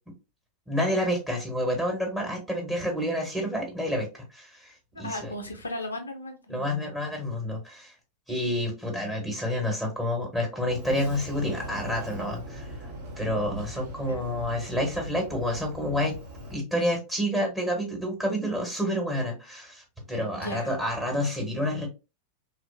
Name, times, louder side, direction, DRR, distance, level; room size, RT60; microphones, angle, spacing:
voice 1, 0.7-5.3 6.5-7.9 8.3-12.7 13.2-16.2 16.5-21.9, equal, 5° right, 1.3 m, -29 dB
voice 2, 4.9-6.9 14.0-14.3 20.3-20.7, left 2 dB, 75° left, 0.5 m, -36 dB
Sliding door, 10.7-16.6, equal, 55° right, 1.1 m, -40 dB
3.1 x 2.3 x 2.6 m
figure-of-eight pair, 90°, 0 cm